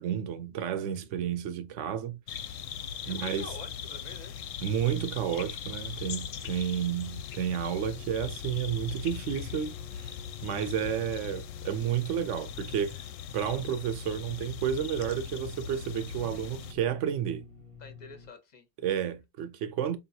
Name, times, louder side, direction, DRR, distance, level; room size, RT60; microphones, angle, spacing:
voice 1, 0.0-2.2 3.1-3.5 4.6-10.1 10.4-13.1 13.3-17.5 18.8-20.0, right 9 dB, 65° right, 0.9 m, -31 dB
sound 1, 2.3-16.7, left 8 dB, 70° left, 0.9 m, -40 dB
sound 2, 2.3-18.3, left 4 dB, 90° right, 1.4 m, -52 dB
voice 2, 3.0-4.4 17.8-18.7, left 4 dB, 40° left, 0.7 m, -47 dB
5.2 x 2.8 x 2.6 m
omnidirectional pair, 1.5 m